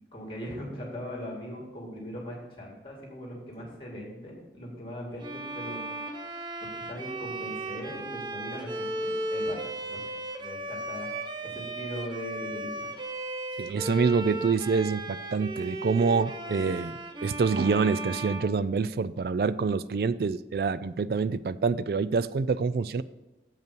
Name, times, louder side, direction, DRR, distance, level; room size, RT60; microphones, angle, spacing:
voice 1, 0.1-5.8 6.6-12.9, equal, 30° left, -1 dB, 2.3 m, -40 dB
Bowed string instrument, 5.2-19.3, right 1 dB, 25° right, 0.7 m, -36 dB
voice 2, 13.6-16.9 17.2-23.0, right 5 dB, 55° right, 16 dB, 0.3 m, -26 dB
7.7 x 5.4 x 6.8 m, 1.0 s
head